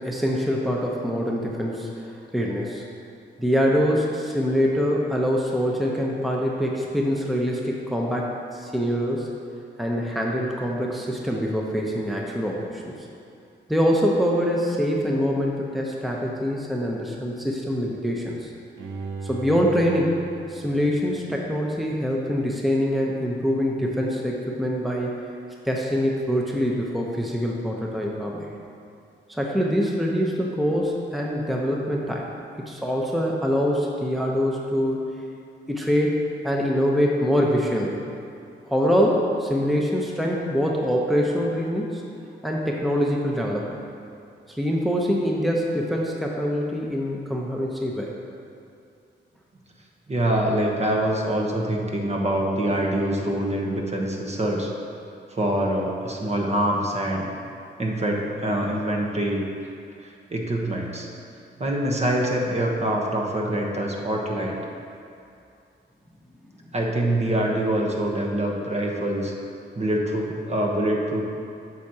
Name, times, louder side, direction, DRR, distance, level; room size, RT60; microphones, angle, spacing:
voice 1, 0.0-2.8 3.4-9.3 9.8-12.9 13.7-18.5 19.2-20.2 20.5-25.2 25.6-28.5 29.3-32.3 32.7-35.1 35.7-38.0 38.6-42.0 42.4-43.8 44.5-48.1, equal, ahead, -2 dB, 0.8 m, -24 dB
Bowed string instrument, 18.8-21.9 22.3-22.4, right 3 dB, 80° right, 0.7 m, -38 dB
voice 2, 50.1-54.7 55.3-57.3 57.8-59.5 60.0-61.1 61.6-64.6 66.7-69.3 69.7-71.2, right 1 dB, 35° right, -1 dB, 1.0 m, -25 dB
8.3 x 6.3 x 2.8 m, 2.6 s
cardioid pair, 70°, 20 cm